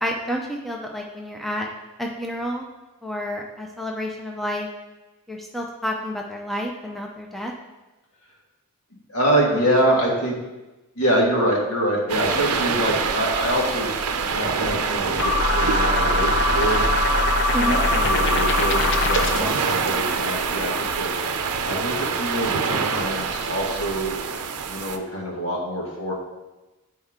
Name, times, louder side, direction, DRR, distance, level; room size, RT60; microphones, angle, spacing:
voice 1, 0.0-1.7 2.0-2.7 3.0-4.7 5.3-7.5 17.5-17.8 19.4-19.5, equal, ahead, 0 dB, 0.5 m, -29 dB
voice 2, 9.1-10.4 11.0-13.9 14.3-16.8 17.6-21.1 21.6-24.2 24.6-26.1, right 1 dB, 80° left, -2 dB, 1.8 m, -25 dB
sound 1, 12.1-25.0, right 5 dB, 85° right, 0.6 m, -25 dB
sound 2, 15.2-19.6, left 2 dB, 55° left, 0.6 m, -21 dB
8.8 x 4.4 x 3.6 m, 1.1 s
head